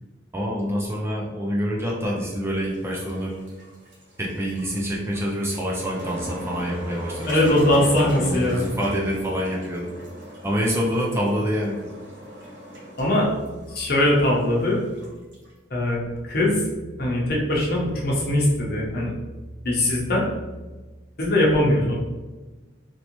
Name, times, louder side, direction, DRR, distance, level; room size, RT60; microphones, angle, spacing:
voice 1, 0.3-3.4 4.2-9.9 10.4-11.9, equal, 15° right, -3 dB, 0.4 m, -27 dB
sound 1, 2.4-15.5, equal, 60° right, 1.0 m, -38 dB
voice 2, 7.3-8.7 13.0-13.3 13.7-14.8 15.7-16.6 17.0-19.1 19.6-20.3 21.2-22.0, left 1 dB, 50° left, -3 dB, 0.8 m, -21 dB
3.1 x 2.8 x 2.9 m, 1.2 s
head